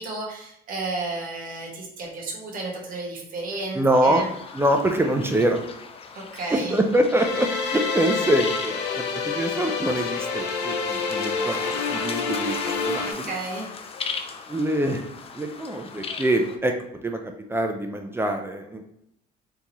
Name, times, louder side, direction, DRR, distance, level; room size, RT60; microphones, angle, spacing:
voice 1, 0.0-4.3 6.1-6.8 13.0-13.7, right 3 dB, 55° right, -1 dB, 1.4 m, -32 dB
voice 2, 3.8-4.3 4.5-5.6 6.5-13.3 14.5-15.0 15.4-16.7 17.0-18.8, right 1 dB, 15° right, 4 dB, 0.5 m, -24 dB
sound 1, 3.9-16.6, left 5 dB, 35° left, 0.5 m, -38 dB
sound 2, 7.2-13.1, left 4 dB, 85° left, 0.8 m, -28 dB
4.0 x 3.7 x 3.0 m, 0.79 s
cardioid pair, 110°, 17 cm